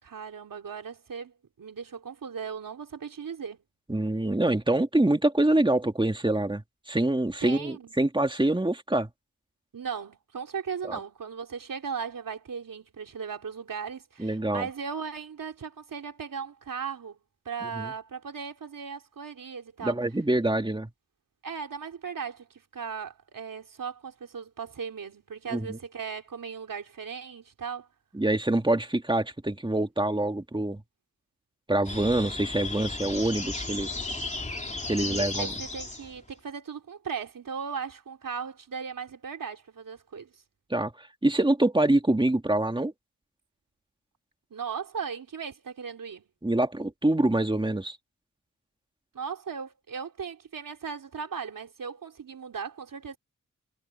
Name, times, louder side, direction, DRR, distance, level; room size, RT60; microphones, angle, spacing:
voice 1, 0.0-3.6 7.4-7.9 9.7-17.2 17.5-20.0 21.4-27.9 35.0-40.4 44.5-46.2 49.1-53.2, right 6 dB, 80° right, 3.6 m, -37 dB
voice 2, 3.9-9.1 10.9-11.0 14.2-14.7 17.8-17.9 19.8-20.9 25.5-25.8 28.1-30.8 31.7-34.0 34.9-35.5 40.7-42.9 46.4-48.0, right 1 dB, 15° right, 2.5 m, -25 dB
sound 1, 31.8-36.2, left 2 dB, 20° left, 3.2 m, -34 dB
cardioid pair, 60°, 32 cm